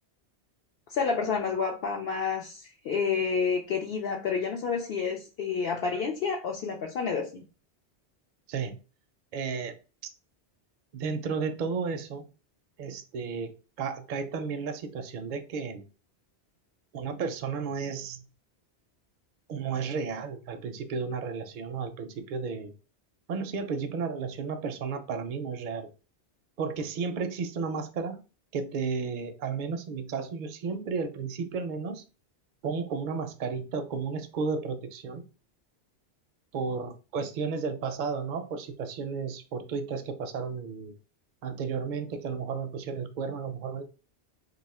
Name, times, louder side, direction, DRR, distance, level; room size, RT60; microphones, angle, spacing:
voice 1, 0.9-7.5, left 5 dB, 65° left, 0.7 m, -29 dB
voice 2, 9.3-9.8 10.9-12.3 12.8-15.8 16.9-18.2 19.5-22.7 23.3-25.9 26.6-28.2 28.5-32.0 32.6-35.2 36.5-40.9 41.4-43.8, right 5 dB, 55° right, 0.6 m, -33 dB
2.7 x 2.3 x 4.1 m
omnidirectional pair, 1.2 m